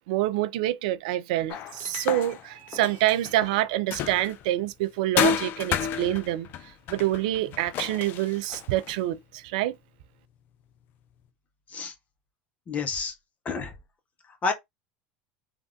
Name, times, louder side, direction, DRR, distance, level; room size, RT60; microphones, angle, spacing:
voice 1, 0.1-6.5 6.9-9.8, right 14 dB, 70° right, 0.3 m, -26 dB
sound 1, 1.5-4.5 5.2-9.0, left 8 dB, 50° left, 0.4 m, -31 dB
voice 2, 12.7-13.1 13.4-13.7 14.4-14.5, left 4 dB, 35° left, 1.0 m, -29 dB
3.2 x 2.5 x 2.5 m
hypercardioid pair, 85°, 4 cm